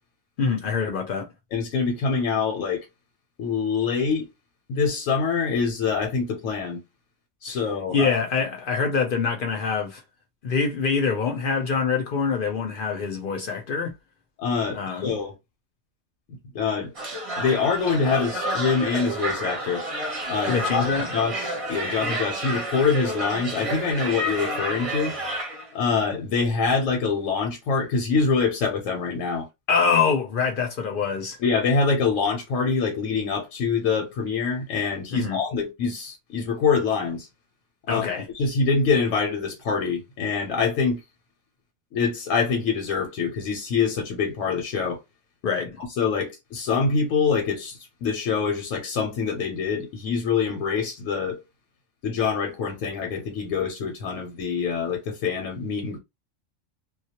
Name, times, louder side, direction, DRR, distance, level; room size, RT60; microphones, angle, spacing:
voice 1, 0.4-1.3 7.5-7.6 7.9-10.0 10.4-13.9 14.7-15.1 20.5-21.1 29.7-31.4 35.1-35.4 37.9-38.3 45.4-45.8, left 5 dB, 60° left, 0.6 m, -25 dB
voice 2, 1.5-2.9 3.4-4.3 4.7-6.8 7.4-8.2 14.4-15.3 16.5-16.9 17.4-19.9 20.3-25.1 25.7-29.5 31.4-37.3 37.9-41.0 41.9-45.0 45.8-51.4 52.0-56.0, left 5 dB, 85° left, 1.0 m, -25 dB
sound 1, 16.9-25.7, right 1 dB, 35° right, 0.7 m, -30 dB
2.3 x 2.1 x 2.7 m
omnidirectional pair, 1.3 m